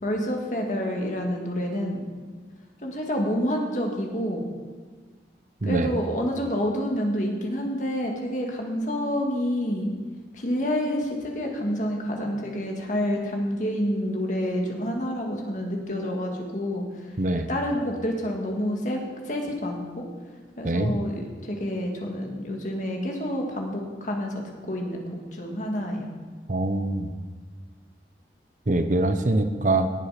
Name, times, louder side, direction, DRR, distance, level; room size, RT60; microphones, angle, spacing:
voice 1, 0.0-2.0 2.8-4.5 5.6-9.9 10.3-17.2 17.5-20.1 20.6-26.1, equal, 45° left, 1 dB, 2.1 m, -28 dB
voice 2, 17.2-17.5 20.6-20.9 26.5-27.1 28.7-29.9, right 2 dB, 45° right, 9 dB, 0.8 m, -24 dB
18.5 x 7.8 x 5.1 m, 1.4 s
head